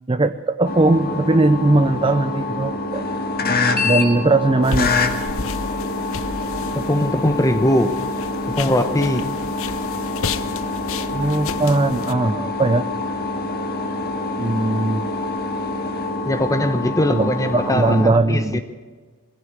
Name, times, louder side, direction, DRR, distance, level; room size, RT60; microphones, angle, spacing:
voice 1, 0.1-3.0 3.8-5.0 11.1-12.9 14.4-15.1 17.1-18.6, right 2 dB, 25° right, 0.6 m, -19 dB
sound 1, 0.6-18.0, left 3 dB, 45° left, 2.0 m, -26 dB
sound 2, 4.6-12.1, left 5 dB, 65° left, 0.9 m, -32 dB
voice 2, 6.7-7.9 8.6-9.2 16.3-18.6, left 1 dB, 15° left, 0.9 m, -20 dB
22.0 x 16.0 x 8.1 m
head